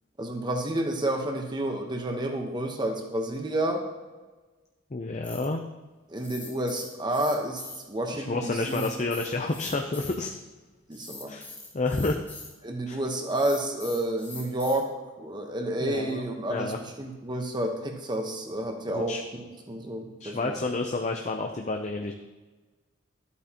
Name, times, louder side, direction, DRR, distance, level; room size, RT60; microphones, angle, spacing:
voice 1, 0.2-3.8 6.1-8.9 10.9-11.3 12.6-14.9 15.2-20.6, right 1 dB, 20° right, 3 dB, 1.1 m, -30 dB
voice 2, 4.9-5.6 8.2-10.3 11.3-11.4 11.7-12.2 12.9-13.0 15.8-16.2 16.5-16.8 18.9-19.2 20.2-22.1, left 3 dB, 35° left, 3 dB, 0.6 m, -29 dB
sound 1, 5.2-5.6 6.2-7.8 8.5-10.2 10.9-12.5 13.3-14.8, left 3 dB, 10° left, 1.8 m, -43 dB
13.0 x 8.4 x 3.0 m, 1.2 s
head